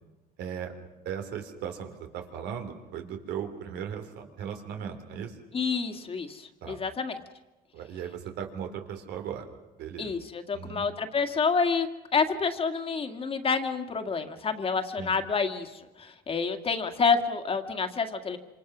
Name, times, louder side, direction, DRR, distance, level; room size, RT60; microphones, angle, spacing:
voice 1, 0.4-0.7 1.0-5.4 6.6-6.8 7.7-9.5 9.8-10.1 10.5-10.9 15.0-15.2, right 8 dB, 80° right, 5 dB, 3.4 m, -37 dB
voice 2, 5.5-7.2 10.0-18.4, left 5 dB, 35° left, 7 dB, 2.1 m, -28 dB
27.5 x 26.0 x 6.2 m, 1.1 s
cardioid pair, 110°, 17 cm